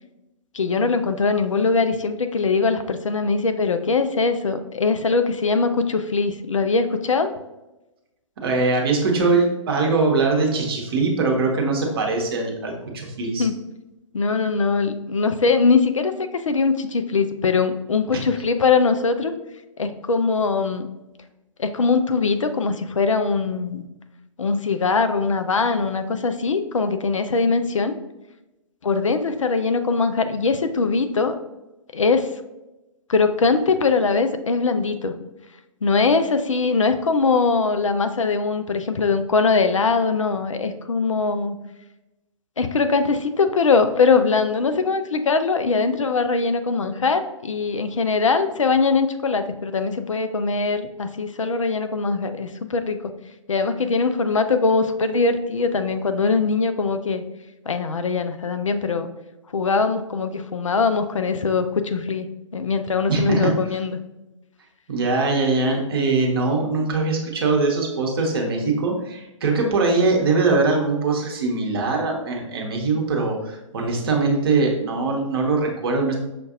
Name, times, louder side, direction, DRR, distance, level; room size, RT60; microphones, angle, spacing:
voice 1, 0.5-7.3 13.4-13.6 14.1-19.3 19.8-20.9 21.6-23.8 24.4-27.9 28.8-31.4 31.9-32.3 33.1-35.1 35.8-41.6 42.6-53.0 53.5-57.2 57.7-59.1 59.5-62.3 62.5-64.0, left 4 dB, 70° left, 9 dB, 0.4 m, -21 dB
voice 2, 8.4-13.5 18.1-18.2 63.1-63.5 64.9-76.1, right 3 dB, 45° right, 1 dB, 0.9 m, -22 dB
6.0 x 2.5 x 2.5 m, 0.97 s
figure-of-eight pair, 125°, 17 cm